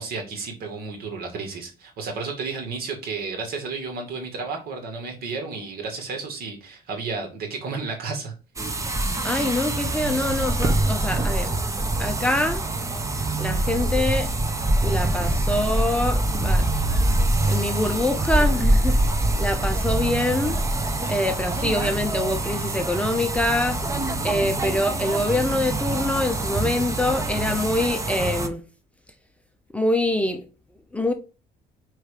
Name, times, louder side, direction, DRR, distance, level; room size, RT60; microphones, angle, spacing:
voice 1, 0.0-8.3, right 4 dB, 65° right, 2.4 m, -32 dB
sound 1, 8.6-28.5, right 2 dB, 20° right, 0.9 m, -24 dB
voice 2, 9.2-11.5 12.0-12.6 13.4-14.3 14.8-16.7 17.4-19.0 19.4-20.6 21.1-23.8 24.2-28.6 29.7-30.4 30.9-31.1, left 2 dB, 5° left, 0.8 m, -25 dB
5.0 x 4.6 x 5.1 m
cardioid pair, 110°, 17 cm